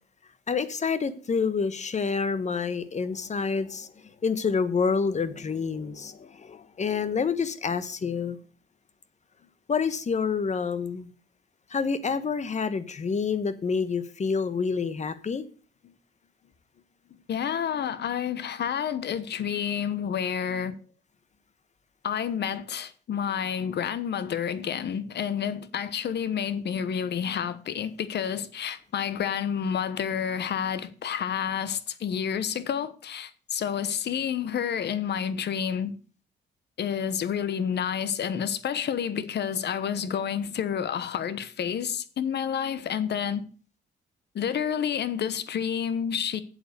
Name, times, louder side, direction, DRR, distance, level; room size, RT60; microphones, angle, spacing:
voice 1, 0.5-3.9 4.2-8.4 9.7-11.1 11.7-15.4, left 5 dB, 35° left, 1.2 m, -28 dB
voice 2, 17.3-20.8 22.0-35.9 36.8-43.5 44.3-46.4, left 8 dB, 60° left, 1.1 m, -29 dB
7.9 x 7.9 x 6.7 m
cardioid pair, 90°, 20 cm